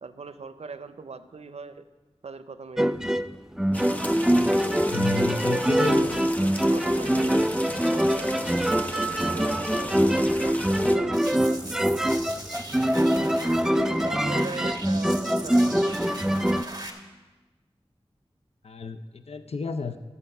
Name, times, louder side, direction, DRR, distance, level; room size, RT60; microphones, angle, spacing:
voice 1, 0.0-1.8 2.2-3.1 5.2-12.4 13.1-13.4 13.7-15.9, right 4 dB, 90° right, 11 dB, 0.6 m, -40 dB
sound 1, 2.8-16.6, equal, 5° right, 0.4 m, -24 dB
sound 2, 3.7-11.0, equal, 15° left, 0.9 m, -36 dB
voice 2, 4.9-6.3 18.6-20.0, left 4 dB, 75° left, 10 dB, 0.5 m, -31 dB
sound 3, 11.1-16.9, right 2 dB, 35° right, 1.7 m, -40 dB
12.5 x 8.2 x 5.4 m, 1.2 s
wide cardioid pair, 40°, 11 cm